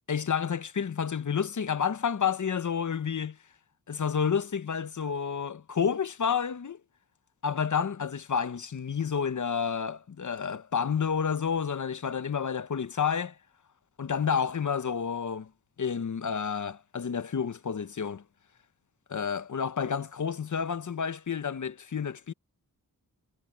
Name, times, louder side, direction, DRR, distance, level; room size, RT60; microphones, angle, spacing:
voice 1, 0.1-3.4 3.9-6.8 7.4-13.3 14.0-15.5 15.8-18.2 19.1-22.3, left 7 dB, 55° left, 1.0 m, -30 dB
wide cardioid pair, 75°, 36 cm